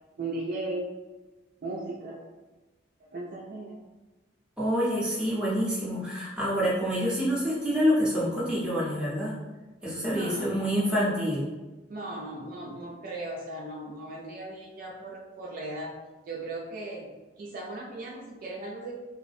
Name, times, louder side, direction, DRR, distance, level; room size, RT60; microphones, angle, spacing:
voice 1, 0.2-0.9 1.6-2.2 3.0-3.8 10.1-10.8 11.9-16.0 16.3-17.1 17.4-18.9, right 2 dB, 50° right, -3 dB, 0.3 m, -37 dB
voice 2, 4.6-9.4 9.8-11.5, equal, 5° right, -7 dB, 0.6 m, -27 dB
2.4 x 2.0 x 2.5 m, 1.2 s
head